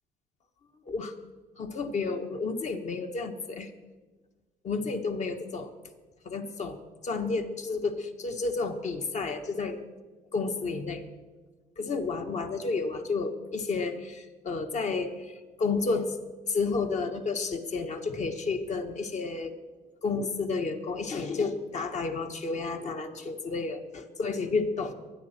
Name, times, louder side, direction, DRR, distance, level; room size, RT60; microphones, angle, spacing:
voice 1, 1.6-3.7 4.6-5.7 6.2-6.8 7.0-9.8 10.3-11.0 11.8-16.1 16.5-19.5 20.0-24.9, left 4 dB, 45° left, 6 dB, 1.6 m, -31 dB
23.5 x 10.0 x 4.5 m, 1.3 s
cardioid pair, 110°, 17 cm